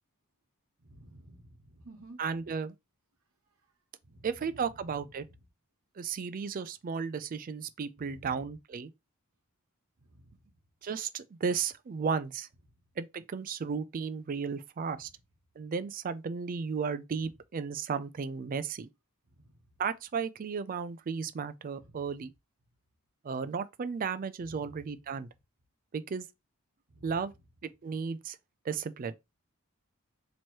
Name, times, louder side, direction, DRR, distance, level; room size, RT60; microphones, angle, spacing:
voice 1, 0.8-2.2 4.0-4.5 8.0-8.5 10.0-10.3 19.3-19.6 21.8-22.0 24.5-24.8 26.9-27.2, right 1 dB, 70° right, 1.1 m, -53 dB
voice 2, 2.2-2.7 4.2-5.3 6.0-8.9 10.8-12.5 13.0-15.1 15.6-18.9 19.8-22.3 23.2-25.3 25.9-26.3 27.0-27.3 27.6-28.4 28.7-29.1, right 5 dB, 40° right, 0.3 m, -34 dB
3.0 x 3.0 x 4.4 m
head